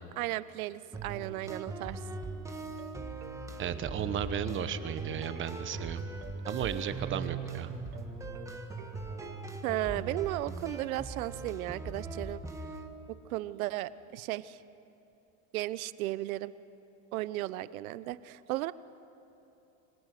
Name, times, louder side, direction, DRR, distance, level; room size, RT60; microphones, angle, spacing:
voice 1, 0.2-2.0 9.6-12.4 13.1-14.6 15.5-16.5 17.1-18.7, right 16 dB, 90° right, 16 dB, 0.9 m, -35 dB
sound 1, 0.9-12.9, right 3 dB, 5° right, 1.5 m, -40 dB
sound 2, 2.5-10.2, right 13 dB, 70° right, 1.9 m, -52 dB
voice 2, 3.6-6.0 6.5-7.7, right 9 dB, 30° right, 11 dB, 1.1 m, -34 dB
26.0 x 19.0 x 9.4 m, 2.9 s
supercardioid pair, 145°, 41 cm